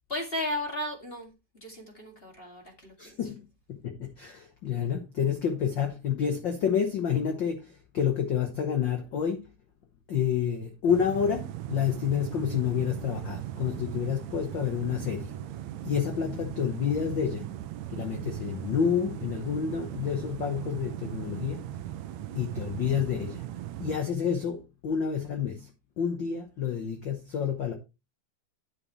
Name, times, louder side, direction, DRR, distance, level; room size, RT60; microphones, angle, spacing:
voice 1, 0.1-1.3 1.6-3.2, left 1 dB, 20° left, 2.1 m, -35 dB
voice 2, 3.0-9.5 10.1-15.4 15.8-17.5 17.9-21.8 22.3-23.4 23.8-25.7 26.0-27.7, left 8 dB, 65° left, 1.1 m, -29 dB
sound 1, 10.9-24.0, right 12 dB, 75° right, 1.8 m, -38 dB
9.7 x 8.1 x 3.2 m
omnidirectional pair, 3.6 m